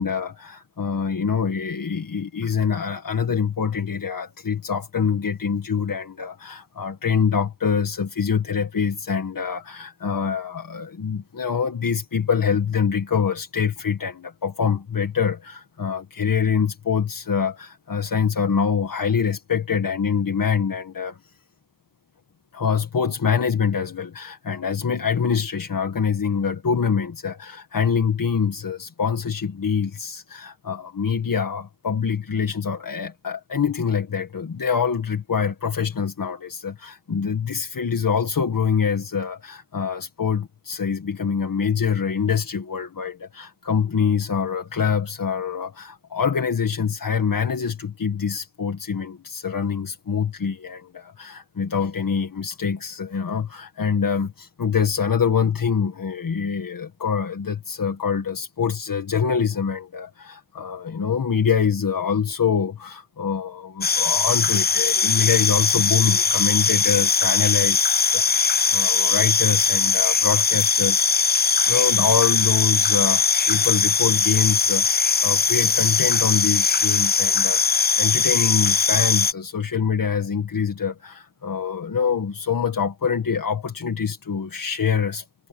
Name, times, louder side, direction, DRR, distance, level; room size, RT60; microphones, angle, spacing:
voice 1, 0.0-21.3 22.5-85.5, left 6 dB, 85° left, 1.8 m, -25 dB
sound 1, 63.8-79.3, left 5 dB, 30° left, 0.4 m, -20 dB
cardioid pair, 50°, 33 cm